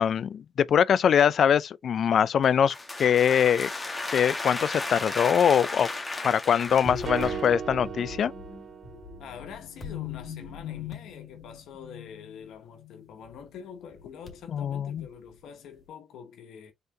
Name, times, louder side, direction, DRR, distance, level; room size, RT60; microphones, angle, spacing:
voice 1, 0.0-3.7 4.1-5.9 6.2-8.3 14.5-15.1, left 8 dB, 60° left, 0.3 m, -23 dB
sound 1, 2.4-7.5, left 2 dB, 20° left, 1.2 m, -34 dB
sound 2, 6.8-13.5 14.0-14.4 15.0-15.1, left 5 dB, 35° left, 2.0 m, -40 dB
sound 3, 7.1-9.4, right 7 dB, 50° right, 0.4 m, -36 dB
voice 2, 9.2-16.7, left 7 dB, 80° left, 1.0 m, -45 dB
4.1 x 3.9 x 2.7 m
cardioid pair, 90°, 0 cm